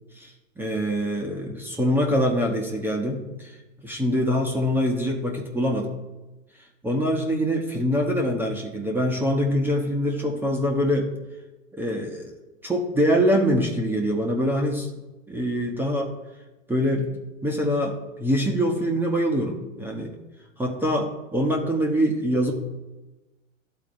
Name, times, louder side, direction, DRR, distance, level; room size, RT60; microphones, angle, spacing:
voice 1, 0.6-3.6 3.8-5.9 6.8-11.1 11.7-12.3 12.6-14.9 15.3-16.1 16.7-17.1 17.4-20.1 20.6-22.5, equal, 5° right, 0 dB, 0.6 m, -24 dB
12.5 x 4.1 x 2.5 m, 1.1 s
hypercardioid pair, 115°, 40 cm